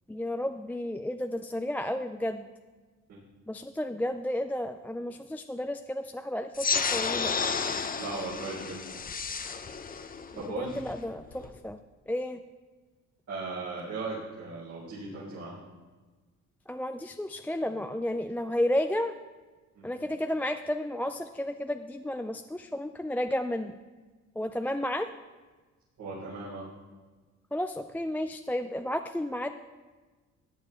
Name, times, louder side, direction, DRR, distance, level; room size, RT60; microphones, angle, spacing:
voice 1, 0.1-2.5 3.5-7.4 10.6-11.8 12.1-12.4 16.7-19.1 19.8-23.8 24.4-25.1 27.5-29.5, left 1 dB, 5° left, 7 dB, 0.4 m, -32 dB
sound 1, 6.5-11.6, left 5 dB, 30° left, 0.7 m, -32 dB
voice 2, 8.0-8.8 10.4-10.7 13.3-15.5 19.7-20.0 26.0-26.7, right 3 dB, 75° right, -9 dB, 4.0 m, -37 dB
15.0 x 9.1 x 3.4 m, 1.3 s
cardioid pair, 90°, 30 cm